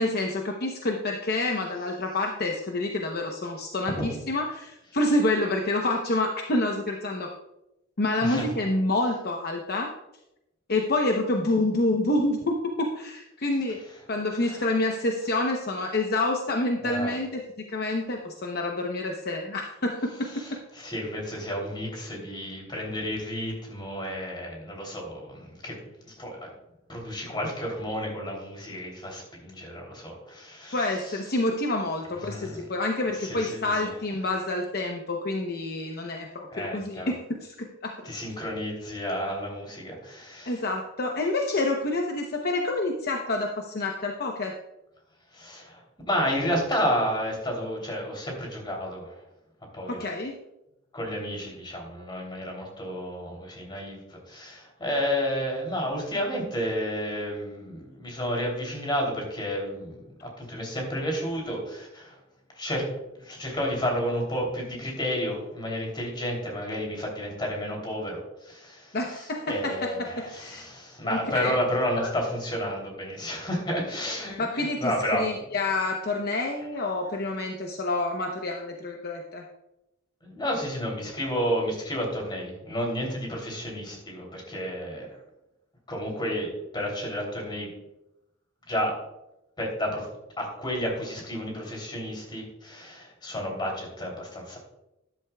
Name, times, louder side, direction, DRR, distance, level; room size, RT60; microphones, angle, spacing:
voice 1, 0.0-7.3 8.0-9.9 10.7-13.8 14.1-17.4 17.7-20.4 30.7-38.1 40.5-44.5 49.9-50.3 68.9-70.6 71.0-71.5 72.0-72.1 74.4-79.4, left 2 dB, 50° left, 2 dB, 0.9 m, -28 dB
voice 2, 16.8-17.1 20.3-26.4 26.9-30.8 31.1-31.2 32.2-32.6 33.2-33.9 36.5-37.1 38.0-40.6 45.3-49.2 49.7-50.0 50.9-62.1 62.5-62.9 63.1-68.9 69.5-75.2 80.2-85.2 85.9-87.7 88.7-89.0 89.6-90.1 90.4-94.6, equal, 25° left, 0 dB, 3.1 m, -31 dB
12.5 x 11.0 x 2.3 m, 0.90 s
head